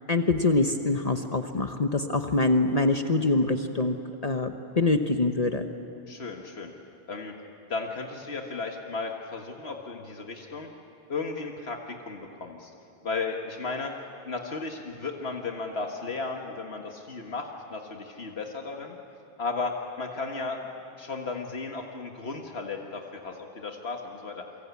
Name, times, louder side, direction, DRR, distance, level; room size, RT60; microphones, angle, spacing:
voice 1, 0.1-4.0 4.2-5.6, left 3 dB, 40° left, 6 dB, 1.0 m, -24 dB
voice 2, 6.1-6.7 7.1-7.3 7.7-10.7 11.1-12.7 13.0-13.9 14.2-19.0 19.4-20.6 21.0-24.4, left 4 dB, 80° left, 2 dB, 1.9 m, -35 dB
28.0 x 24.0 x 8.4 m, 2.8 s
omnidirectional pair, 1.0 m